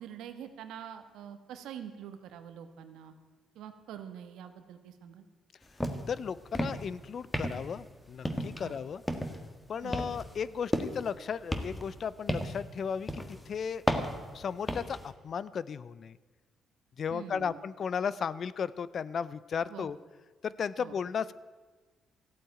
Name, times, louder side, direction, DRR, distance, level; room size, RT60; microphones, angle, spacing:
voice 1, 0.0-3.1 3.5-5.2 8.6-8.8 9.8-10.0 17.1-17.6 19.7-19.9 20.8-20.9, right 9 dB, 85° right, 9 dB, 1.3 m, -45 dB
sound 1, 5.8-6.1 6.4-6.9 7.3-7.8 8.2-8.7 9.1-9.5 9.9-11.1 11.5-12.7 13.1-13.4 13.9-15.0, equal, 10° left, 1.5 m, -33 dB
voice 2, 6.1-9.0 9.7-13.8 14.3-16.2 17.0-20.0 20.4-21.3, left 7 dB, 55° left, 18 dB, 0.5 m, -35 dB
14.5 x 8.6 x 9.1 m, 1.4 s
cardioid pair, 90°, 0 cm